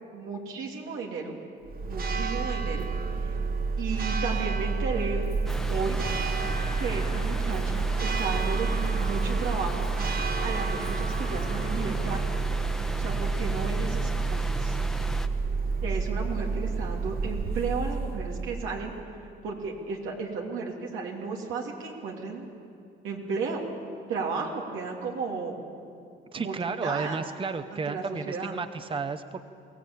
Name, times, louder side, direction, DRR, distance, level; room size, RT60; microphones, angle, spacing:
voice 1, 0.1-1.4 1.9-2.9 3.8-5.3 5.7-6.0 6.8-9.9 10.4-12.2 13.0-14.7 15.8-18.9 19.4-22.5 23.0-23.6 24.1-25.6 26.3-27.2 27.7-28.6, right 4 dB, 90° right, 0 dB, 3.2 m, -34 dB
Church bell, 1.6-18.9, right 4 dB, 50° right, 1.4 m, -29 dB
sound 1, 5.5-15.3, left 1 dB, ahead, 1.2 m, -37 dB
voice 2, 26.3-29.4, right 4 dB, 25° right, 10 dB, 0.8 m, -32 dB
22.0 x 16.5 x 8.8 m, 2.5 s
cardioid pair, 90°, 20 cm